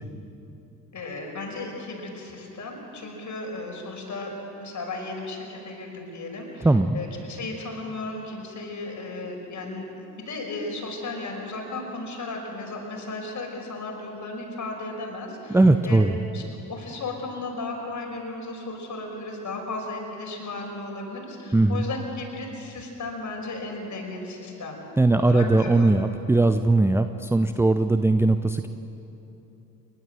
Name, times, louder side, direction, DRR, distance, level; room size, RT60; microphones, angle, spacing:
voice 1, 0.9-4.3 4.6-6.7 6.9-16.4 16.7-24.8 25.2-25.9, left 2 dB, 40° left, 0 dB, 5.7 m, -35 dB
voice 2, 6.6-7.0 15.5-16.2 21.5-21.8 25.0-28.7, right 2 dB, 5° right, 8 dB, 0.6 m, -20 dB
29.0 x 12.0 x 7.8 m, 3.0 s
figure-of-eight pair, 45°, 46 cm